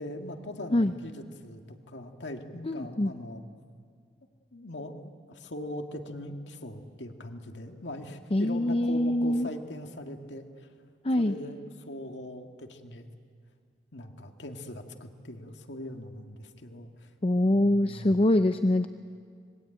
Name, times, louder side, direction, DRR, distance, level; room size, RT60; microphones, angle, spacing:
voice 1, 0.0-3.4 4.5-10.7 11.2-13.1 13.9-17.1 17.5-18.1, left 1 dB, 85° left, 4 dB, 2.0 m, -41 dB
voice 2, 2.7-3.1 8.3-9.5 11.0-11.3 17.2-18.9, left 1 dB, 30° left, 9 dB, 0.6 m, -24 dB
25.5 x 21.5 x 9.1 m, 2.1 s
head